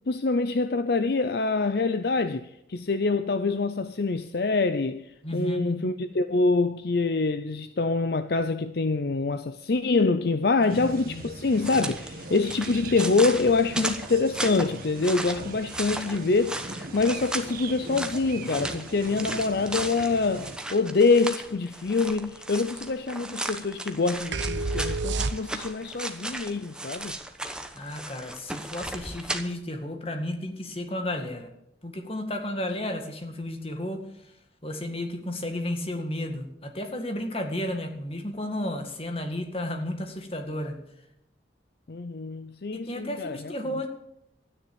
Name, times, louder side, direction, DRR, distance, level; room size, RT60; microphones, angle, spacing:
voice 1, 0.1-27.2 41.9-43.4, left 3 dB, 55° left, 0.6 m, -25 dB
voice 2, 5.2-5.8 10.6-11.2 27.7-31.5 31.8-34.3 34.6-40.8 42.7-43.9, left 1 dB, 30° left, 1.9 m, -33 dB
sound 1, 10.7-20.6, right 2 dB, 50° right, 1.7 m, -40 dB
sound 2, 11.5-29.4, right 1 dB, 5° right, 1.0 m, -36 dB
sound 3, 24.3-25.9, right 3 dB, 80° right, 0.7 m, -29 dB
13.0 x 9.8 x 8.8 m
head